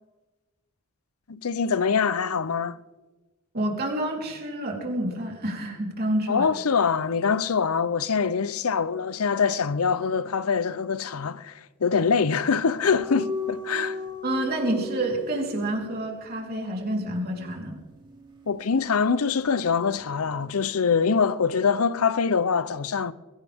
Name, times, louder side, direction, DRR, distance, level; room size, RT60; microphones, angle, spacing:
voice 1, 1.3-2.8 6.3-14.0 18.5-23.1, left 5 dB, 75° left, 0.7 m, -24 dB
voice 2, 3.5-6.5 14.2-17.8, right 1 dB, 45° right, 3.8 m, -28 dB
sound 1, 12.9-19.7 19.9-20.2, left 2 dB, 20° right, 2.7 m, -37 dB
22.0 x 16.5 x 3.6 m
head